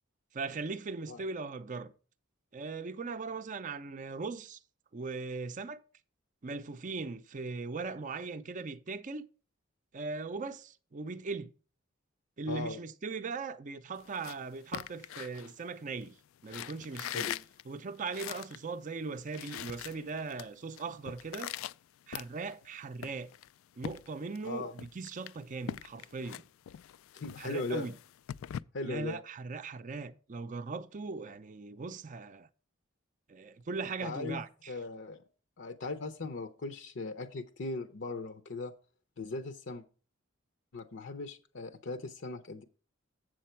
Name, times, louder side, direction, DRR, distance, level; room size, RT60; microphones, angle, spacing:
voice 1, 0.3-1.9 2.5-4.6 4.9-5.8 6.4-9.2 9.9-11.5 12.4-16.2 16.4-17.3 17.7-21.5 22.1-23.3 23.8-26.4 27.4-28.0 28.8-32.5 33.3-34.8, right 4 dB, 40° right, 0.5 m, -39 dB
voice 2, 12.5-12.8 17.1-17.4 24.4-24.7 27.1-27.8 28.7-29.2 34.0-35.2 35.6-38.7 39.2-39.8 40.7-42.6, left 3 dB, 60° left, 0.7 m, -39 dB
sound 1, 14.0-16.0 16.4-18.6 19.0-19.1 19.2-20.5 20.8-22.7 23.0-24.5 24.8-28.6, left 10 dB, 75° left, 0.3 m, -42 dB
7.7 x 7.5 x 4.4 m
head